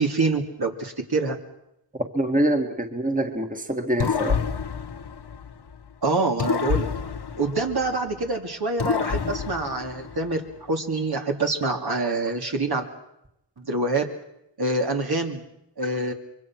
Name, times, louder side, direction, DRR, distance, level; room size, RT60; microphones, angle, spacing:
voice 1, 0.0-1.4 6.0-6.9 7.4-12.8 13.6-14.1 14.6-15.4 15.8-16.1, right 3 dB, 55° right, 2 dB, 2.7 m, -26 dB
voice 2, 2.1-4.4, right 1 dB, 15° right, 4 dB, 2.1 m, -25 dB
sound 1, 4.0-5.9 6.4-8.3 8.8-10.5, left 6 dB, 55° left, 1.2 m, -28 dB
25.5 x 23.0 x 6.2 m, 0.83 s
cardioid pair, 50°, 46 cm